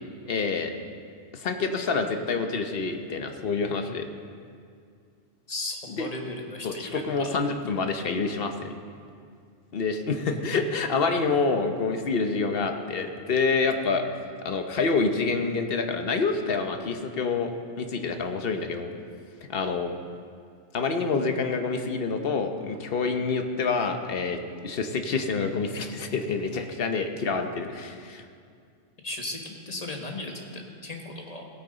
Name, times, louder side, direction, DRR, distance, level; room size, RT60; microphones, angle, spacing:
voice 1, 0.3-0.7 1.3-4.1 6.0-6.1 6.6-8.7 9.7-14.0 14.4-17.5 17.8-18.9 19.5-19.9 20.7-28.2, left 4 dB, 55° left, 6 dB, 0.9 m, -27 dB
voice 2, 5.5-7.4 29.0-31.5, left 2 dB, 30° left, 1 dB, 1.3 m, -36 dB
16.5 x 9.1 x 3.9 m, 2.3 s
omnidirectional pair, 1.3 m